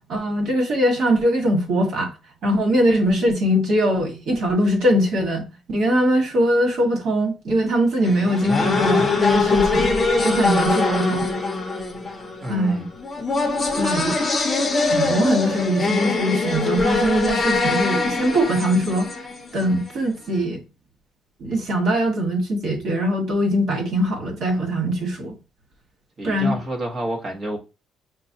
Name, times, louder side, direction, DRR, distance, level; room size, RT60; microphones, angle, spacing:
voice 1, 0.0-2.1 2.4-9.9 10.2-11.3 12.5-12.8 13.7-14.2 14.9-19.1 19.5-20.6 21.4-25.3 26.2-26.5, equal, 60° right, 1.7 m, -21 dB
sound 1, 8.0-19.9, left 3 dB, 20° left, 0.8 m, -22 dB
voice 2, 12.4-12.9 26.2-27.6, right 1 dB, 35° right, 1.2 m, -29 dB
6.1 x 2.2 x 2.8 m
cardioid pair, 150°, 0 cm